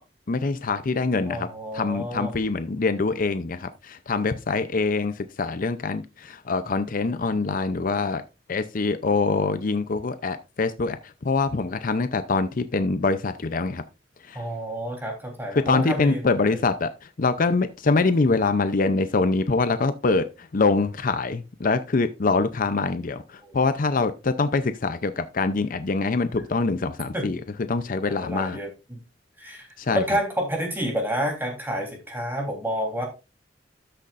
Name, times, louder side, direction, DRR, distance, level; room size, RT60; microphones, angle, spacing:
voice 1, 0.3-1.5 1.7-8.2 8.5-13.8 14.3-14.4 15.5-16.9 17.2-27.4 27.7-28.6 29.8-30.0, left 3 dB, 50° left, 11 dB, 0.6 m, -24 dB
voice 2, 1.3-2.3 14.3-16.6 23.4-23.6 27.1-27.3 28.1-29.0 29.4-33.1, equal, 10° right, 1 dB, 3.4 m, -29 dB
13.0 x 6.6 x 2.5 m, 0.28 s
head